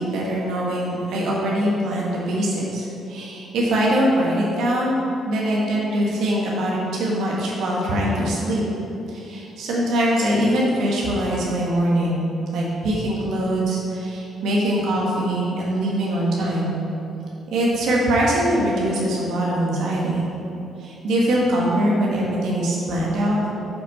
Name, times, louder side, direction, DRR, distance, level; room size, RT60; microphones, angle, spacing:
voice 1, 0.0-5.0 5.2-8.6 9.1-16.8 17.5-20.3 20.8-23.4, right 1 dB, 80° right, -4 dB, 1.7 m, -22 dB
7.1 x 5.9 x 5.6 m, 2.8 s
cardioid pair, 90°, 0 cm